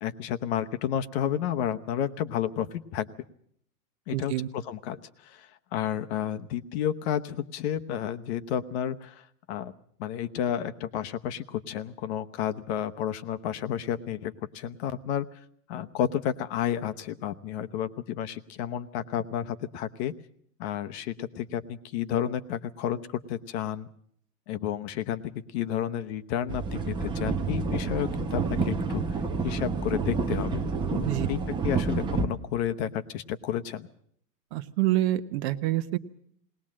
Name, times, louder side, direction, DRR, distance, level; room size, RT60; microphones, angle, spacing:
voice 1, 0.0-3.1 4.1-9.7 10.0-15.4 15.7-20.1 20.6-23.9 24.5-31.4 31.6-33.9, left 10 dB, 45° left, 10 dB, 1.0 m, -31 dB
voice 2, 4.1-4.5 30.9-31.3 34.5-36.0, right 14 dB, 45° right, 11 dB, 1.0 m, -27 dB
sound 1, 26.5-32.3, right 4 dB, 10° right, 0.8 m, -29 dB
19.5 x 19.5 x 7.5 m, 0.66 s
supercardioid pair, 150°, 47 cm